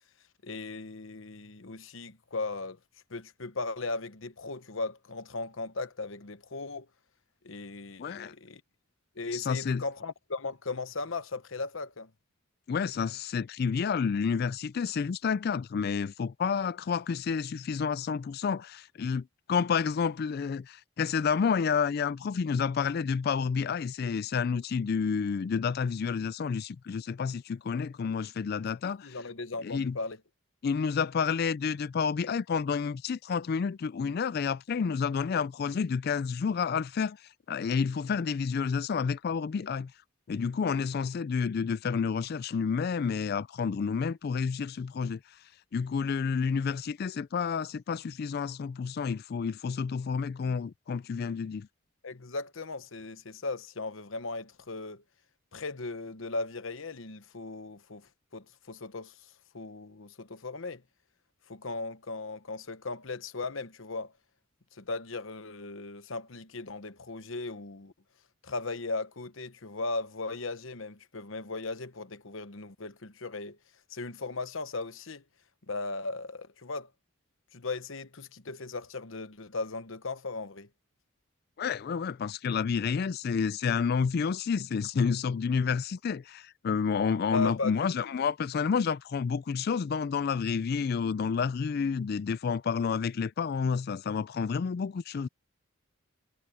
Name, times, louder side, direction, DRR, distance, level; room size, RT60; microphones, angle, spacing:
voice 1, 0.4-2.8 3.1-6.9 7.4-8.6 9.2-12.1 28.8-30.2 52.0-55.0 55.5-59.1 59.5-60.8 61.5-64.1 64.7-67.9 68.4-73.6 73.9-75.2 75.7-76.9 77.5-80.7 87.3-87.9, left 3 dB, 65° left, 1.1 m, -37 dB
voice 2, 8.0-8.3 9.3-9.8 12.7-29.2 29.6-30.0 30.6-37.2 37.5-39.9 40.3-45.2 45.7-51.7 81.6-95.3, left 6 dB, 45° left, 0.3 m, -30 dB
head